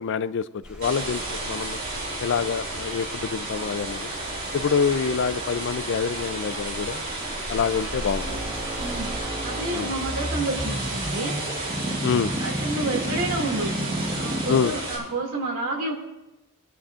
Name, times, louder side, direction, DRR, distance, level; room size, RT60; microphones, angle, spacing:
voice 1, 0.0-1.8 2.2-4.1 4.5-7.1 7.5-8.4 9.7-9.9 12.0-12.3 14.5-14.7, left 6 dB, 60° left, 15 dB, 0.4 m, -26 dB
sound 1, 0.6-9.2, equal, 5° right, 3.5 m, -41 dB
sound 2, 0.8-15.0, right 2 dB, 45° right, 4.2 m, -32 dB
sound 3, 8.2-15.1, right 1 dB, 25° right, 1.0 m, -31 dB
voice 2, 8.8-9.1 9.4-11.3 12.4-13.7 14.2-15.9, right 2 dB, 90° right, -1 dB, 2.4 m, -29 dB
19.5 x 10.0 x 2.5 m, 0.96 s
head